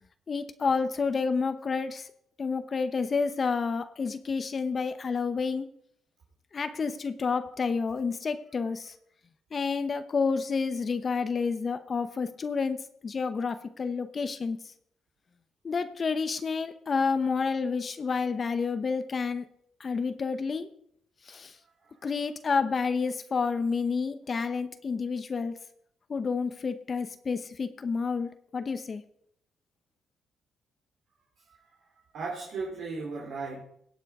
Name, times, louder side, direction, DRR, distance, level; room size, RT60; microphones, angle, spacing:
voice 1, 0.3-2.1 2.4-5.7 6.5-9.0 9.5-12.8 13.0-14.6 15.6-19.5 19.8-20.7 21.3-21.6 22.0-25.6 26.1-29.0, left 5 dB, 40° left, 10 dB, 0.8 m, -29 dB
voice 2, 21.5-22.0 31.4-33.6, right 4 dB, 70° right, -2 dB, 2.9 m, -38 dB
17.5 x 7.5 x 4.8 m, 0.70 s
cardioid pair, 90°, 0 cm